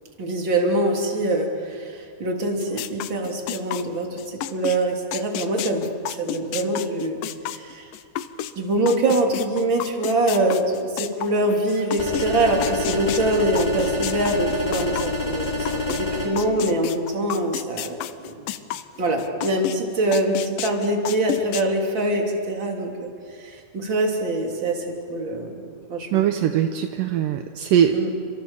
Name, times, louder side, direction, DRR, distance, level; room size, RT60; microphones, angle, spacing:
voice 1, 0.2-5.9 6.2-7.2 7.5-7.8 8.6-18.5 19.0-23.1 23.4-25.6 25.9-26.2 27.9-28.1, right 1 dB, 30° right, 1 dB, 3.4 m, -24 dB
sound 1, 2.6-8.5 8.9-16.0 16.4-19.8 20.1-21.6, left 12 dB, 85° left, 1.9 m, -31 dB
sound 2, 12.0-16.3, left 2 dB, 10° left, 5.4 m, -27 dB
voice 2, 26.1-28.1, right 9 dB, 75° right, 6 dB, 2.0 m, -21 dB
30.0 x 25.5 x 7.3 m, 2.2 s
omnidirectional pair, 5.0 m